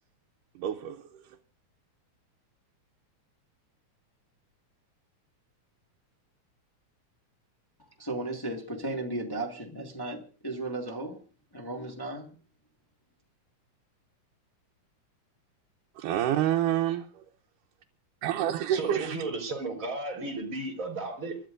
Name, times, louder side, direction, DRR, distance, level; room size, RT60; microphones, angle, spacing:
voice 1, 0.6-1.4 16.0-17.3 18.2-19.1, right 11 dB, 85° right, 2.4 m, -28 dB
voice 2, 7.8-11.2 11.5-12.3, right 2 dB, 15° left, 0.9 m, -35 dB
voice 3, 18.7-21.4, right 3 dB, 25° right, 3.2 m, -34 dB
28.5 x 12.5 x 2.6 m
omnidirectional pair, 3.6 m